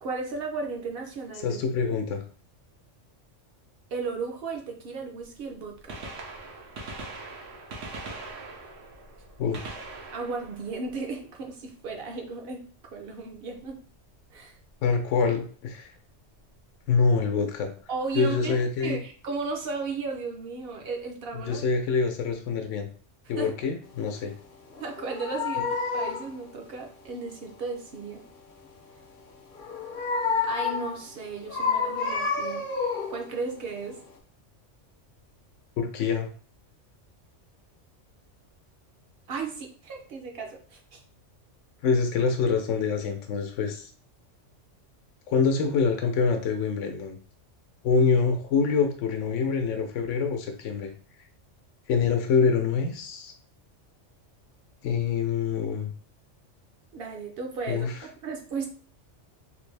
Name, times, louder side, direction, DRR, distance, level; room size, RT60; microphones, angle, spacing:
voice 1, 0.0-1.6 3.9-6.0 10.1-12.7 12.9-13.8 14.3-14.5 17.9-21.6 23.4-23.5 24.8-28.2 30.4-32.6 33.1-34.0 39.3-41.0 56.9-57.9 58.2-58.7, right 4 dB, 60° right, 2 dB, 0.7 m, -35 dB
voice 2, 1.4-2.2 9.4-9.6 14.8-15.9 16.9-17.7 18.2-19.0 21.3-22.9 23.3-24.3 35.8-36.3 41.8-43.9 45.3-47.2 47.8-50.9 51.9-53.3 54.8-55.9 57.7-57.9, left 5 dB, 80° left, 5 dB, 0.9 m, -25 dB
Gunshot gunfire, 5.8-11.6 13.5-13.7 14.7-14.8 16.4-16.5 17.9-18.0 18.2-18.3, right 3 dB, 85° right, 1.1 m, -41 dB
sound 1, 24.7-26.3 29.5-31.0 31.5-33.3 33.8-34.0, left 5 dB, 55° left, 0.7 m, -29 dB
3.3 x 2.5 x 3.2 m, 0.42 s
omnidirectional pair, 1.3 m